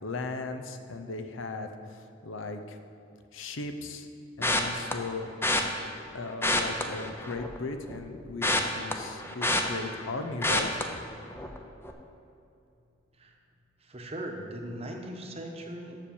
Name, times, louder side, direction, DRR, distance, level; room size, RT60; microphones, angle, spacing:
voice 1, 0.0-2.8 3.3-4.1 4.4-5.3 6.1-10.8, left 3 dB, 85° left, 7 dB, 0.7 m, -37 dB
sound 1, 4.4-4.9 5.4-5.6 6.3-7.6 7.9-10.1 10.4-10.8 11.3-11.6 11.8-11.9, left 2 dB, 10° left, 0.6 m, -27 dB
voice 2, 13.8-16.0, right 1 dB, 30° right, 2 dB, 1.0 m, -39 dB
7.4 x 6.9 x 7.0 m, 2.5 s
head